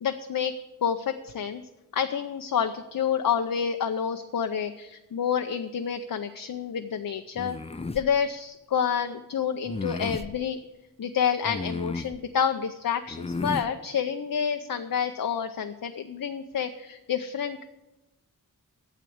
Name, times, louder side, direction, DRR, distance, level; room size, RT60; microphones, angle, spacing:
voice 1, 0.0-0.5 0.8-1.6 1.9-7.6 7.9-10.6 11.0-17.6, left 7 dB, 75° left, 7 dB, 0.6 m, -28 dB
sound 1, 7.4-8.1 9.7-10.3 11.4-12.2 13.1-13.7, left 3 dB, 20° left, 0.4 m, -33 dB
9.3 x 7.5 x 8.4 m, 1.0 s
wide cardioid pair, 80°, 34 cm